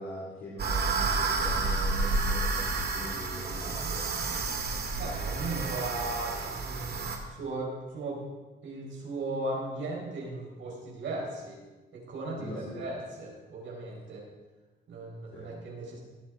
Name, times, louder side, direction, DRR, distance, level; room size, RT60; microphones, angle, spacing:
voice 1, 0.0-4.0 12.4-13.0 15.3-15.5, left 1 dB, 75° left, -5 dB, 2.7 m, -41 dB
sound 1, 0.6-7.2, right 3 dB, 55° right, 2.0 m, -30 dB
voice 2, 5.0-7.1 7.4-8.2 8.6-11.6 11.9-14.2 14.9-16.0, right 2 dB, 75° right, -2 dB, 4.9 m, -37 dB
18.5 x 8.6 x 3.8 m, 1.2 s
cardioid pair, 90°, 20 cm